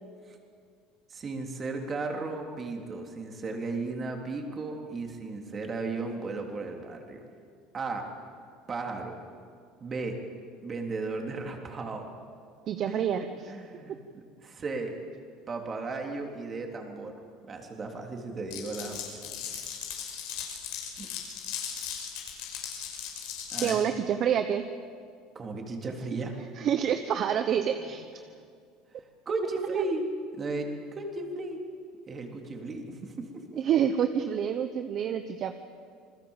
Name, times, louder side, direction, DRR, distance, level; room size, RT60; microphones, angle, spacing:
voice 1, 1.1-7.2 7.7-8.1 8.7-9.2 9.8-10.2 10.6-12.1 12.8-13.0 13.5-14.9 15.5-17.1 17.4-19.3 21.0-21.1 23.5-23.8 25.3-26.4 27.8-27.9 29.0-31.6 32.1-33.4, right 3 dB, 25° right, 2 dB, 3.4 m, -35 dB
voice 2, 12.7-13.5 23.6-24.6 26.6-28.0 29.6-29.8 33.6-35.5, right 8 dB, 45° right, 8 dB, 1.0 m, -27 dB
Glass, 18.5-23.7, left 8 dB, 80° left, 5.7 m, -37 dB
28.0 x 21.0 x 7.3 m, 2.2 s
cardioid pair, 140°, 0 cm